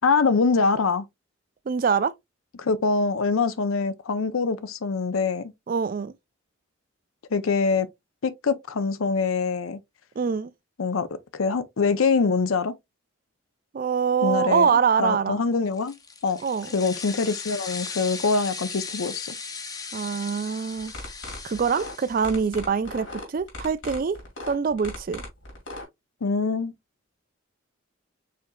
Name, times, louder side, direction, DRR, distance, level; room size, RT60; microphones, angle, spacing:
voice 1, 0.0-1.0 2.6-5.5 7.3-7.9 8.2-9.8 10.8-11.1 11.3-12.7 14.2-14.7 15.0-16.0 16.2-16.4 16.7-19.3 26.2-26.7, left 4 dB, 80° left, 0.6 m, -24 dB
voice 2, 1.7-2.1 5.7-6.1 10.2-10.5 13.7-15.4 16.4-16.7 19.9-20.9 21.4-24.2 24.5-25.2, right 6 dB, 40° right, 0.3 m, -24 dB
sound 1, 15.7-22.6, left 4 dB, 15° left, 0.6 m, -38 dB
sound 2, 20.8-25.8, left 2 dB, 65° left, 2.4 m, -37 dB
5.1 x 3.9 x 2.2 m
head